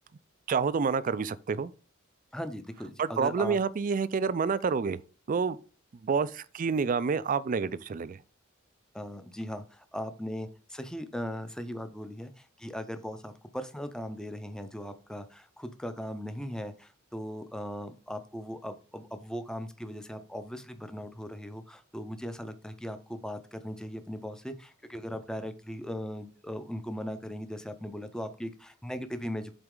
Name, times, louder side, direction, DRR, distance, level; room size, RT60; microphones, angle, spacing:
voice 1, 0.5-1.7 3.0-5.0 5.3-5.6 6.0-8.2, right 5 dB, 40° right, 0.3 m, -28 dB
voice 2, 2.3-3.6 8.9-29.5, equal, 5° left, 0.6 m, -38 dB
7.8 x 4.1 x 3.7 m
head